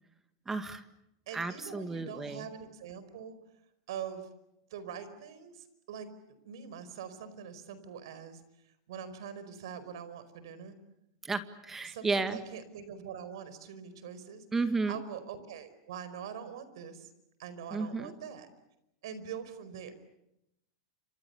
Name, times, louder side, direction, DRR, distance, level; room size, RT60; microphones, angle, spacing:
voice 1, 0.5-0.8 1.3-2.5 11.2-12.4 14.5-15.0 17.7-18.1, right 3 dB, 15° right, 9 dB, 1.8 m, -33 dB
voice 2, 1.3-3.4 3.9-4.3 4.7-6.1 6.4-8.4 8.9-10.8 11.9-14.4 14.9-17.1 17.4-18.5 19.0-19.9, right 7 dB, 75° right, 13 dB, 4.9 m, -43 dB
29.0 x 27.5 x 7.0 m, 0.83 s
supercardioid pair, 130°, 2 cm